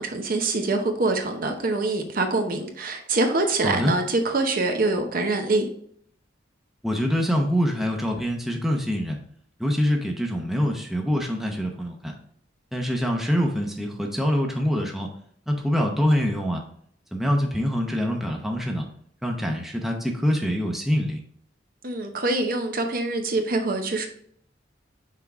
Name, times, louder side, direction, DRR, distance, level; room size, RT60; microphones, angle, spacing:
voice 1, 0.0-5.7 21.8-24.1, right 2 dB, 50° right, 5 dB, 0.8 m, -24 dB
voice 2, 3.6-3.9 6.8-9.2 9.6-12.1 12.7-15.1 15.5-16.6 17.1-18.9 19.2-21.2, equal, ahead, 1 dB, 0.7 m, -25 dB
5.9 x 4.6 x 3.5 m, 0.63 s
head